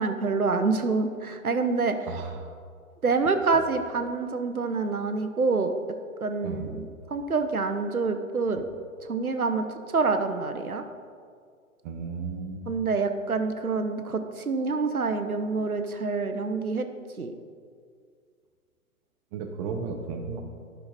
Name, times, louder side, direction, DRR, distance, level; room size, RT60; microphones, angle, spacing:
voice 1, 0.0-2.0 3.0-5.7 6.2-8.7 9.1-10.8 12.7-16.9 17.2-17.3, right 4 dB, 90° right, 7 dB, 0.8 m, -27 dB
voice 2, 11.8-12.6 19.3-20.4, right 5 dB, 25° right, 4 dB, 0.7 m, -34 dB
11.5 x 5.8 x 4.1 m, 2.1 s
figure-of-eight pair, 115°, 43 cm